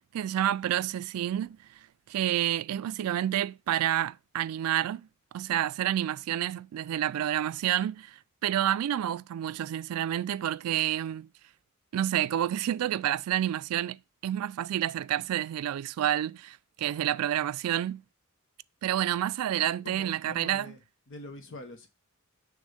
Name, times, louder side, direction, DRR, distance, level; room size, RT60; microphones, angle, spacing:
voice 1, 0.1-1.6 2.1-5.1 5.3-11.3 11.9-18.0 18.8-20.7, right 11 dB, 85° right, 0.3 m, -29 dB
voice 2, 19.8-20.8 21.1-21.9, left 2 dB, 60° left, 1.0 m, -44 dB
6.4 x 3.5 x 4.9 m
head